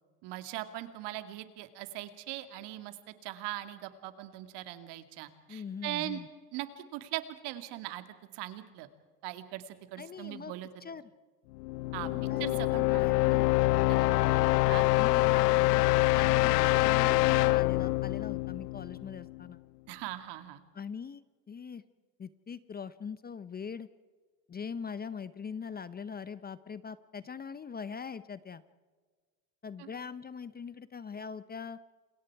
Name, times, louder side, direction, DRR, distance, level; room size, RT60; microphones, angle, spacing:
voice 1, 0.2-2.9 3.2-6.2 6.5-6.7 6.9-8.0 8.3-8.9 9.2-10.7 11.9-12.1 12.4-13.0 13.9-14.4 14.7-15.0 19.9-20.6 29.8-29.9, right 15 dB, 60° right, 9 dB, 2.3 m, -40 dB
voice 2, 5.5-6.3 10.0-10.5 10.8-11.1 12.0-12.4 12.9-13.5 14.9-19.6 20.7-21.8 22.2-23.9 24.5-28.6 29.6-31.8, left 6 dB, 20° left, 15 dB, 0.8 m, -42 dB
sound 1, 11.6-19.4, left 20 dB, 90° left, 0.6 m, -25 dB
28.5 x 21.0 x 4.8 m, 1.4 s
supercardioid pair, 105°, 47 cm